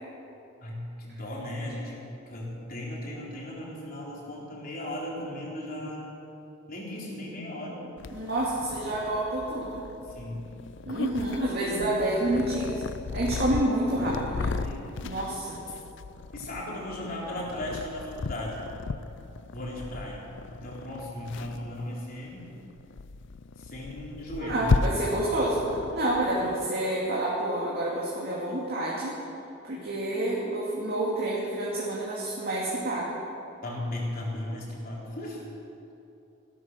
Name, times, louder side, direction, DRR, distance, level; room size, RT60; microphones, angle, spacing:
voice 1, 0.6-2.0 2.3-6.1 6.7-7.8 10.1-10.5 11.4-11.9 14.6-15.0 16.3-18.6 19.5-20.2 20.5-22.4 23.6-24.7 33.6-35.4, left 1 dB, 45° left, -4 dB, 3.8 m, -36 dB
Purr, 8.0-26.7, left 4 dB, 65° left, 0.5 m, -35 dB
voice 2, 8.1-9.8 10.9-12.8 13.1-14.6 15.0-15.6 24.4-29.2 29.6-33.2, right 1 dB, 50° right, -6 dB, 2.5 m, -28 dB
16.5 x 12.5 x 6.3 m, 2.8 s
head